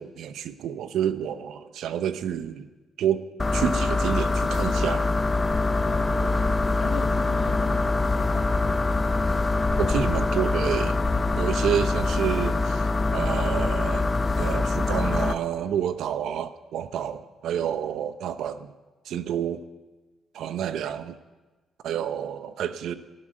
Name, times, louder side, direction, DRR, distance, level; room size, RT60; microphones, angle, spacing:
voice 1, 0.0-2.7 3.0-3.3 3.5-5.1 9.8-11.0 11.4-14.1 14.4-18.7 19.1-19.6 20.3-21.2 21.8-22.9, right 9 dB, 75° right, 12 dB, 0.8 m, -29 dB
Fridge Hum, 3.4-15.3, left 3 dB, 25° left, 0.7 m, -24 dB
voice 2, 5.7-6.4 6.8-8.7, left 5 dB, 65° left, 1 dB, 2.3 m, -38 dB
13.5 x 12.0 x 7.5 m, 1.2 s
cardioid pair, 90°, 0 cm